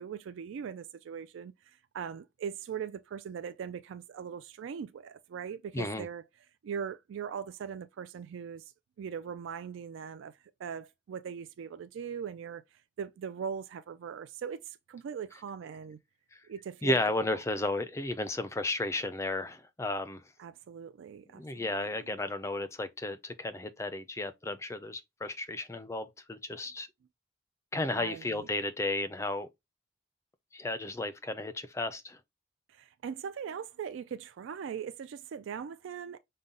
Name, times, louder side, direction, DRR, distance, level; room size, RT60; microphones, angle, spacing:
voice 1, 0.0-6.2 6.6-8.7 9.0-16.0 16.5-17.1 20.4-21.7 28.0-28.5 32.7-36.2, right 7 dB, 80° right, 0.3 m, -40 dB
voice 2, 5.7-6.1 16.8-20.2 21.4-26.9 27.7-29.5 30.5-32.2, left 2 dB, 15° left, 0.3 m, -33 dB
5.4 x 2.1 x 3.7 m
head